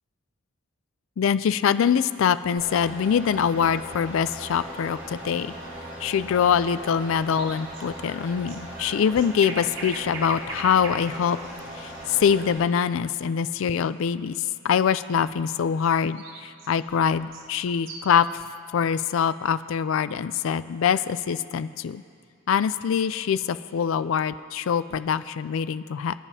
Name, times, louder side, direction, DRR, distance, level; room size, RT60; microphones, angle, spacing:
voice 1, 1.2-5.5 6.0-11.4 11.8-18.3 18.7-22.0 22.5-26.1, left 7 dB, 65° left, 14 dB, 0.3 m, -24 dB
sound 1, 2.6-12.6, equal, 40° right, 3.4 m, -39 dB
sound 2, 7.3-12.4 15.8-18.2, right 3 dB, 60° right, 0.9 m, -40 dB
24.0 x 9.0 x 2.8 m, 2.3 s
head